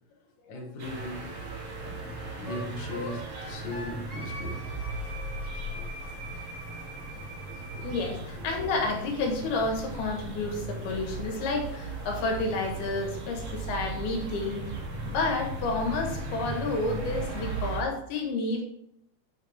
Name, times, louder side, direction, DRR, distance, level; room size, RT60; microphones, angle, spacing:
voice 1, 0.5-1.5 1.8-4.6 5.8-5.9, left 1 dB, 40° left, -1 dB, 1.9 m, -39 dB
sound 1, 0.8-17.8, right 3 dB, 45° right, 2.4 m, -37 dB
Wind instrument woodwind instrument, 2.5-8.1, equal, 10° right, 2.5 m, -43 dB
sound 2, 4.3-8.8, left 1 dB, 80° right, 3.9 m, -41 dB
voice 2, 7.8-14.7 15.1-18.6, left 3 dB, 75° left, 2 dB, 3.5 m, -30 dB
9.1 x 7.5 x 3.6 m, 0.73 s
omnidirectional pair, 4.5 m